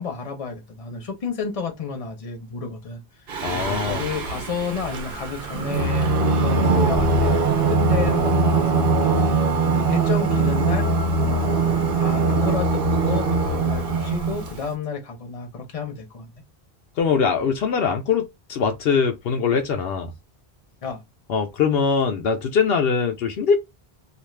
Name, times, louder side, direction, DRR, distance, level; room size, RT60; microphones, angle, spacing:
voice 1, 0.0-3.0 3.5-6.1 6.4-9.4 9.7-10.9 11.2-16.3 20.8-21.0, left 5 dB, 40° left, 0.8 m, -31 dB
Singing, 3.3-14.6, right 3 dB, 60° right, 0.9 m, -21 dB
voice 2, 3.4-4.0 17.0-20.1 21.3-23.6, left 6 dB, 75° left, 0.8 m, -22 dB
2.4 x 2.4 x 3.1 m
omnidirectional pair, 1.0 m